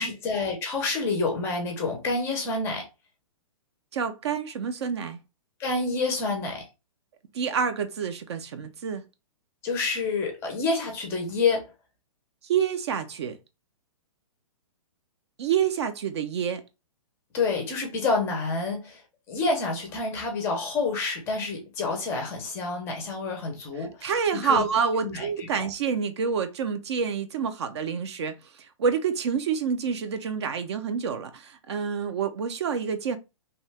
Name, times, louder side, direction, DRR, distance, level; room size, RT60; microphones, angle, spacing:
voice 1, 0.0-2.9 5.6-6.7 9.6-11.7 17.3-19.0 19.3-24.7 25.0-25.7, left 3 dB, 15° left, 0.5 m, -28 dB
voice 2, 3.9-5.2 7.3-9.0 12.5-13.4 15.4-16.6 24.0-28.3 28.8-33.2, right 6 dB, 50° right, 0.5 m, -27 dB
2.7 x 2.2 x 3.2 m
hypercardioid pair, 160°, 18 cm